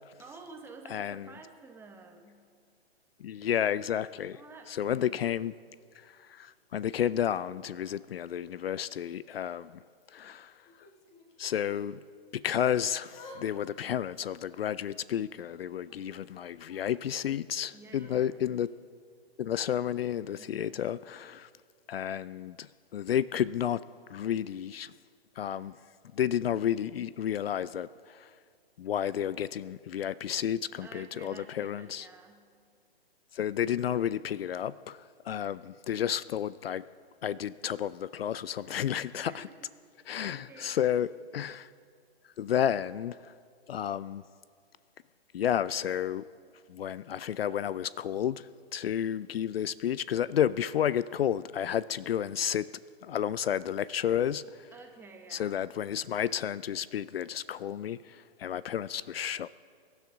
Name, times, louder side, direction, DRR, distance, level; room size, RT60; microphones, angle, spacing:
voice 1, 0.2-2.4 4.3-5.3 17.7-18.4 20.3-20.8 30.8-32.5 39.1-39.7 40.1-40.9 54.7-55.7, right 3 dB, 5° right, 1.1 m, -51 dB
voice 2, 0.9-1.3 3.2-4.4 4.7-5.6 6.0-9.7 10.1-10.5 11.4-12.0 12.3-18.7 19.4-21.5 21.9-23.8 24.1-24.9 25.4-25.7 26.1-28.3 28.8-32.1 33.3-36.8 37.2-39.4 40.1-41.7 42.4-43.3 43.7-44.2 45.3-46.3 46.7-52.7 53.0-54.7 55.3-59.5, left 10 dB, 65° left, 0.5 m, -31 dB
Yell / Crying sobbing, 10.7-11.9 12.5-13.4 13.7-15.1 15.6-17.2 17.9-18.1, left 2 dB, 20° left, 1.8 m, -53 dB
24.5 x 12.5 x 3.8 m
hypercardioid pair, 135°, 32 cm